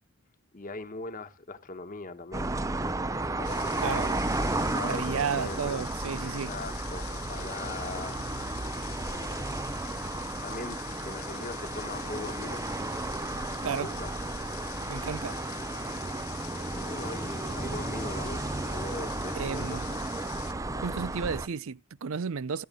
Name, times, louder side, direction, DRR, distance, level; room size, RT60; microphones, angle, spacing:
voice 1, 0.5-2.5 3.4-5.8 6.2-8.2 9.0-9.7 10.4-12.6 13.4-14.1 16.6-20.0, left 3 dB, 35° left, 1.2 m, -41 dB
sound 1, 2.3-21.5, right 2 dB, 15° right, 0.6 m, -33 dB
Water, 3.4-20.5, left 12 dB, 70° left, 0.7 m, -45 dB
voice 2, 3.8-4.1 4.8-6.5 13.6-13.9 14.9-15.4 19.3-19.9 20.8-22.6, right 6 dB, 65° right, 0.5 m, -33 dB
13.5 x 10.0 x 3.7 m
head